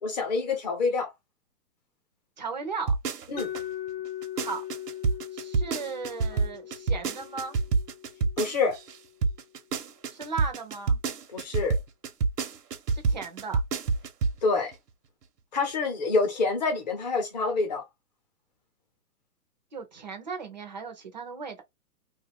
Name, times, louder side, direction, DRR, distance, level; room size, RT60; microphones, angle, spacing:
voice 1, 0.0-1.1 3.3-3.5 8.4-8.7 11.3-11.8 14.4-14.7 15.5-17.8, left 4 dB, 30° left, 0.8 m, -26 dB
voice 2, 2.4-2.9 4.4-4.6 5.3-7.6 10.1-11.0 12.9-13.6 19.7-21.6, right 5 dB, 30° right, 0.5 m, -36 dB
sound 1, 2.9-3.6 4.0-9.0 9.2-14.4 14.7-14.8, right 4 dB, 80° right, 0.9 m, -27 dB
Mallet percussion, 3.4-9.2, left 12 dB, 85° left, 0.6 m, -40 dB
2.6 x 2.4 x 3.3 m
hypercardioid pair, 165°, 47 cm